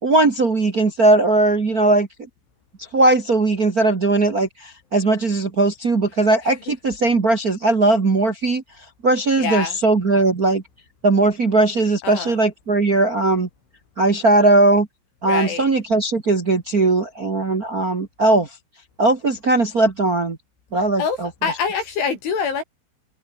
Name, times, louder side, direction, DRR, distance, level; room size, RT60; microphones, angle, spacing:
voice 1, 0.0-2.1 2.9-8.6 9.0-10.6 11.0-13.5 14.0-14.9 15.2-18.5 19.0-20.4 20.7-21.3, right 2 dB, 75° right, 0.8 m, -18 dB
voice 2, 9.4-9.8 12.0-12.4 15.3-15.7 21.0-22.6, left 6 dB, 85° left, 8.5 m, -25 dB
omnidirectional pair, 5.3 m